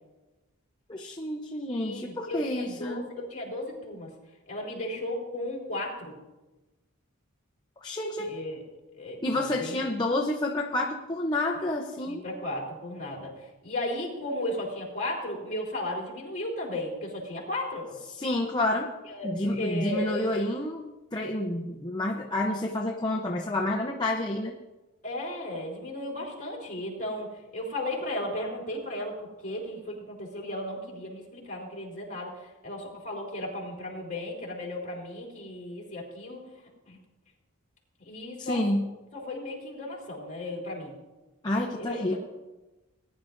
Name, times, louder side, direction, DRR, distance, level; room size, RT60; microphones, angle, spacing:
voice 1, 0.9-3.1 7.8-8.3 9.2-12.2 18.1-18.9 19.2-24.5 38.4-38.9 41.4-42.2, left 1 dB, 20° left, 0 dB, 0.7 m, -29 dB
voice 2, 1.7-4.1 4.5-6.1 8.2-8.6 9.0-9.8 12.0-13.3 13.6-18.0 19.1-20.2 25.0-36.4 36.9-37.0 38.0-38.6 39.1-40.9 41.8-42.2, left 1 dB, 35° left, -3 dB, 3.7 m, -35 dB
20.0 x 10.5 x 2.6 m, 1.1 s
head